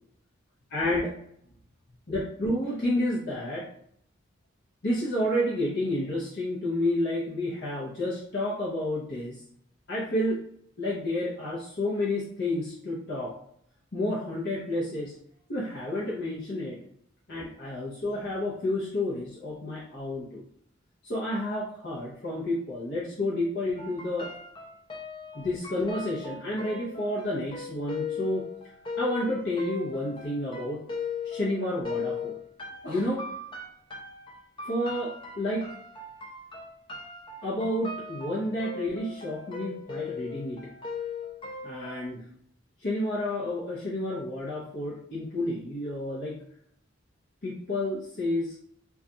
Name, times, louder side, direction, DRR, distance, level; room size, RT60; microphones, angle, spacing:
voice 1, 0.7-1.1 2.1-3.7 4.8-9.4 9.9-10.4 10.8-13.3 13.9-15.1 15.5-16.8 17.3-20.4 21.0-24.3 25.3-28.5 29.0-30.8 31.2-32.4 32.8-33.3 34.7-35.7 37.4-40.7 41.6-42.3 42.8-46.4 47.4-48.5, left 1 dB, 55° left, -7 dB, 0.7 m, -30 dB
sound 1, 23.8-42.0, left 4 dB, 25° left, 0.4 m, -38 dB
2.3 x 2.3 x 3.9 m, 0.67 s
head